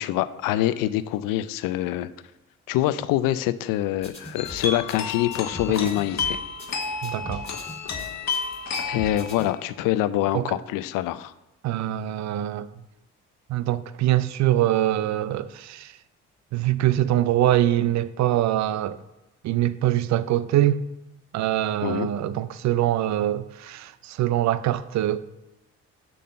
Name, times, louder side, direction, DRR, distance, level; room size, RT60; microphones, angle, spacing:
voice 1, 0.0-2.1 2.7-6.4 8.9-11.3 21.8-22.1, left 14 dB, 65° left, 0.5 m, -25 dB
sound 1, 4.0-9.5, left 2 dB, 15° left, 2.0 m, -40 dB
sound 2, 4.4-9.6, left 5 dB, 50° left, 1.1 m, -31 dB
voice 2, 7.0-7.4 10.3-10.6 11.6-12.7 13.5-16.0 16.5-19.0 19.4-20.8 21.3-25.2, right 13 dB, 50° right, 0.5 m, -23 dB
6.8 x 3.8 x 6.4 m
hypercardioid pair, 45°, 36 cm